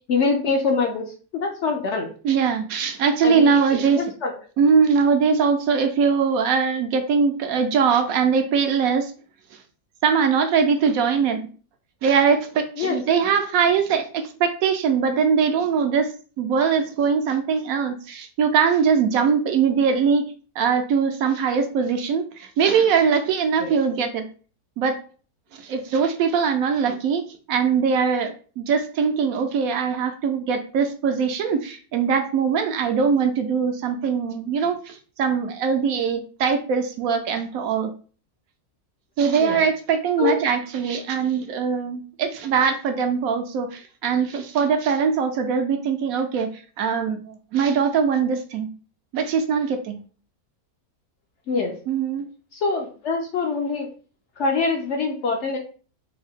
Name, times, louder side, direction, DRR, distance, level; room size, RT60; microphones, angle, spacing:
voice 1, 0.1-1.1 1.3-2.1 3.2-4.3 12.8-13.0 23.6-23.7 39.4-39.6 40.2-40.3 51.5-51.7 52.5-53.9 54.4-55.6, left 4 dB, 65° left, 2 dB, 0.8 m, -24 dB
voice 2, 2.2-4.0 4.6-9.1 10.0-11.5 12.0-20.2 20.6-24.3 24.8-25.0 25.5-37.9 39.2-48.7 49.1-50.0 51.9-52.3, right 6 dB, 75° right, 6 dB, 1.0 m, -21 dB
3.5 x 2.6 x 3.5 m, 0.39 s
omnidirectional pair, 1.6 m